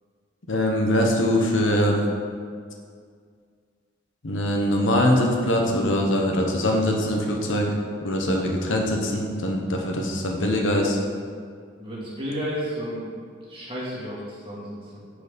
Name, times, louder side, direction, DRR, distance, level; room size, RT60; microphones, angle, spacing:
voice 1, 0.5-2.0 4.2-7.7 8.0-11.0, left 1 dB, 80° left, 1 dB, 1.0 m, -22 dB
voice 2, 11.8-13.2 13.5-15.2, equal, 30° right, -7 dB, 2.0 m, -32 dB
6.6 x 4.8 x 5.1 m, 2.1 s
head